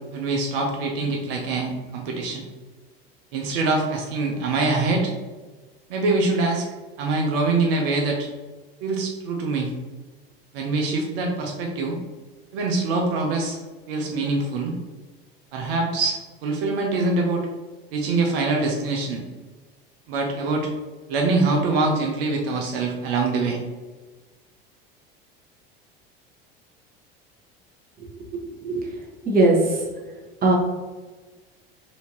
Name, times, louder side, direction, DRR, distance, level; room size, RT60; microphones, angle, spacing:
voice 1, 0.1-2.5 3.3-5.1 5.9-6.7 7.0-8.3 8.8-9.7 10.5-12.0 12.5-13.6 13.9-14.7 15.5-17.5 17.9-19.2 20.1-20.7 21.1-23.6, right 3 dB, 75° right, 1 dB, 0.7 m, -24 dB
voice 2, 28.6-29.0 29.3-29.8 30.4-30.6, right 2 dB, 30° right, -2 dB, 1.2 m, -19 dB
4.3 x 2.7 x 2.8 m, 1.3 s
hypercardioid pair, 85°, 29 cm